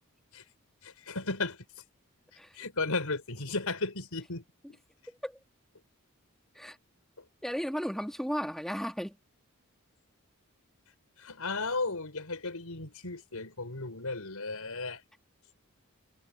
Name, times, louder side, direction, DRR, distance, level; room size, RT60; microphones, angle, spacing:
voice 1, 0.8-1.6 2.5-4.4 4.7-4.8 11.2-15.0, left 3 dB, 90° left, 5.1 m, -35 dB
voice 2, 5.1-5.4 6.5-6.8 7.4-9.2, equal, ahead, 2.0 m, -35 dB
head